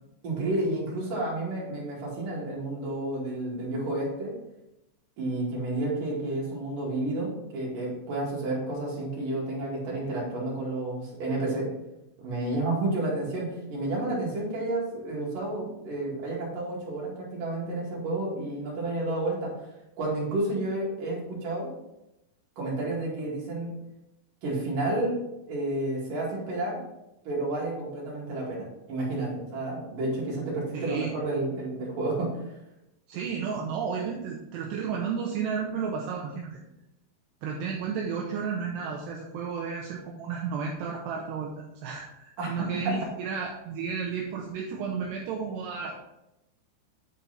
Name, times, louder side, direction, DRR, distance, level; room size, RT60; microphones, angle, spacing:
voice 1, 0.2-4.3 5.2-11.7 12.2-19.5 20.0-21.7 22.6-23.7 24.4-25.2 25.5-26.8 27.2-32.3 42.4-42.9, right 2 dB, 55° right, -4 dB, 3.4 m, -31 dB
voice 2, 30.7-31.1 33.1-36.6 37.4-46.0, right 6 dB, 80° right, -1 dB, 2.6 m, -32 dB
9.7 x 4.5 x 4.1 m, 0.88 s
omnidirectional pair, 5.5 m